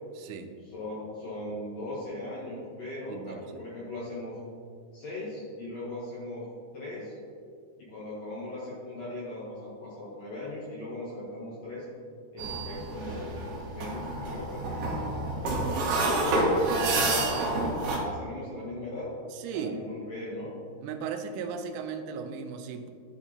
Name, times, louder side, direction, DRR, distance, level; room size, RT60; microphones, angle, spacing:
voice 1, 0.2-0.5 3.1-3.6 16.6-17.0 19.3-19.7 20.8-22.9, right 6 dB, 85° right, 7 dB, 2.5 m, -37 dB
voice 2, 0.7-4.4 4.9-6.5 6.7-7.2 7.8-11.8 12.3-15.7 16.0-19.1 19.5-20.5, left 1 dB, 65° left, -7 dB, 1.7 m, -39 dB
sound 1, 12.4-18.0, right 2 dB, 70° right, 2.5 m, -28 dB
11.0 x 4.4 x 2.8 m, 2.2 s
omnidirectional pair, 4.4 m